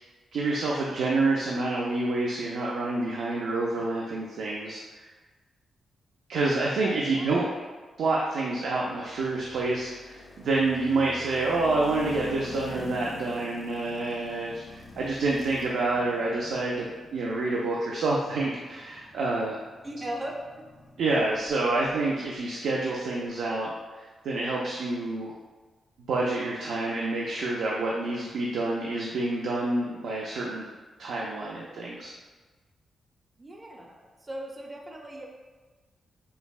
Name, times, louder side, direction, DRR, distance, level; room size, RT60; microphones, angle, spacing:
voice 1, 0.3-5.1 6.3-7.5 8.0-19.6 21.0-25.3 26.1-30.6 31.0-32.1, right 2 dB, 85° right, -3 dB, 0.4 m, -28 dB
voice 2, 6.5-7.7 19.8-20.6 33.4-35.3, right 1 dB, 25° right, 0 dB, 0.5 m, -39 dB
sound 1, 8.9-22.0, left 2 dB, 40° left, 0.6 m, -46 dB
5.4 x 2.0 x 2.4 m, 1.3 s
cardioid pair, 95°, 0 cm